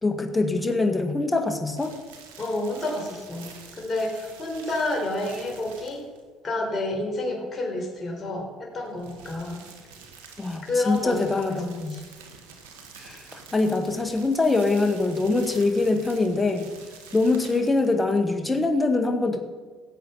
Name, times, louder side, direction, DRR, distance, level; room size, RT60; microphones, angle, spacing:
voice 1, 0.0-1.9 10.4-12.0 13.0-16.7 17.1-19.4, left 3 dB, 20° left, 5 dB, 1.9 m, -24 dB
sound 1, 1.8-6.3 8.7-18.3, right 5 dB, 90° right, 1.7 m, -47 dB
voice 2, 2.4-6.0 6.4-9.6 10.7-12.0, left 2 dB, 40° left, 1 dB, 3.9 m, -29 dB
16.5 x 8.1 x 5.7 m, 1.4 s
hypercardioid pair, 65°, 0 cm